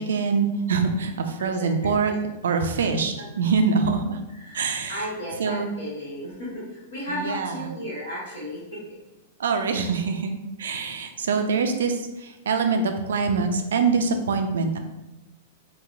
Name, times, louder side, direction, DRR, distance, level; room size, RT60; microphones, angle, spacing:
voice 1, 0.0-2.1 2.4-4.2 4.5-5.1 5.4-5.7 7.1-7.7 9.4-14.8, right 5 dB, 65° right, 5 dB, 0.3 m, -24 dB
voice 2, 1.4-1.7 2.0-2.1 4.3-8.9, equal, 60° left, -8 dB, 1.1 m, -34 dB
3.9 x 2.1 x 2.5 m, 1.0 s
figure-of-eight pair, 100°, 0 cm